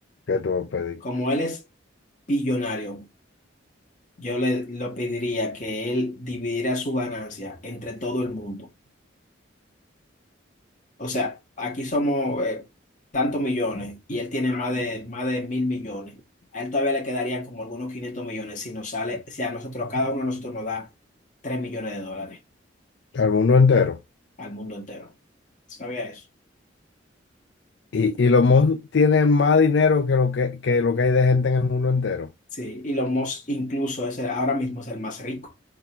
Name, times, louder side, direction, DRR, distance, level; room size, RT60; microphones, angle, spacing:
voice 1, 0.3-1.0 23.1-24.0 27.9-32.3, left 4 dB, 65° left, 0.4 m, -19 dB
voice 2, 1.0-1.6 2.3-3.1 4.2-8.7 11.0-12.7 13.1-16.2 16.5-20.9 21.4-22.4 24.4-25.1 25.7-26.2 32.5-35.5, left 1 dB, 40° left, 1.5 m, -28 dB
3.8 x 2.8 x 4.9 m
head